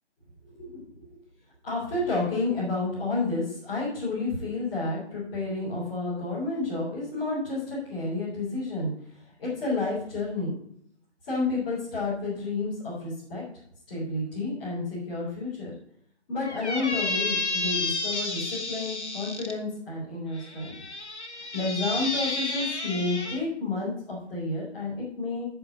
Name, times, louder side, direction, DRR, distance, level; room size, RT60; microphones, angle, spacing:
voice 1, 0.4-0.8 1.6-10.5 11.2-13.4 13.9-15.7 16.3-20.7 21.3-25.5, left 3 dB, 5° left, -10 dB, 3.2 m, -30 dB
Squeak, 16.4-19.5 20.3-23.4, left 2 dB, 70° left, 2.0 m, -31 dB
7.1 x 7.0 x 7.8 m, 0.66 s
figure-of-eight pair, 175°, 35 cm